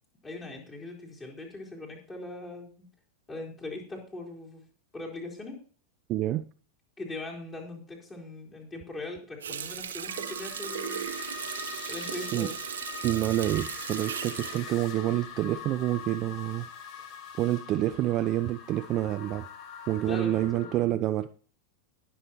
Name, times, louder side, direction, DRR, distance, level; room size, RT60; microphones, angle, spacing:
voice 1, 0.2-2.8 3.3-4.6 4.9-5.6 7.0-11.1 11.9-12.5 20.1-21.0, left 2 dB, 20° left, -2 dB, 4.2 m, -40 dB
voice 2, 6.1-6.5 12.3-12.5 13.0-16.7 17.4-19.5 19.9-21.3, right 14 dB, 35° right, 12 dB, 0.4 m, -28 dB
Water tap faucet, 9.4-15.8 16.2-16.4, right 8 dB, 65° right, 1.1 m, -37 dB
sound 1, 10.1-20.8, left 7 dB, 40° left, 1.5 m, -43 dB
20.0 x 7.0 x 3.0 m, 0.41 s
figure-of-eight pair, 90°, 0 cm